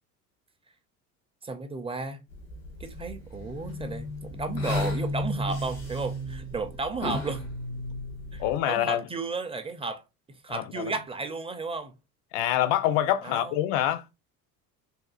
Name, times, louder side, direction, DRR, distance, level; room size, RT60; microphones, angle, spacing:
voice 1, 1.4-2.2 2.8-7.4 8.3-10.0 10.4-11.9 13.2-13.5, right 3 dB, 15° right, 0.5 m, -33 dB
sound 1, 2.3-8.6, left 1 dB, 90° left, 1.5 m, -34 dB
voice 2, 8.4-9.1 10.5-10.9 12.3-14.1, left 12 dB, 65° left, 0.6 m, -26 dB
3.4 x 2.4 x 2.3 m
hypercardioid pair, 65°, 45 cm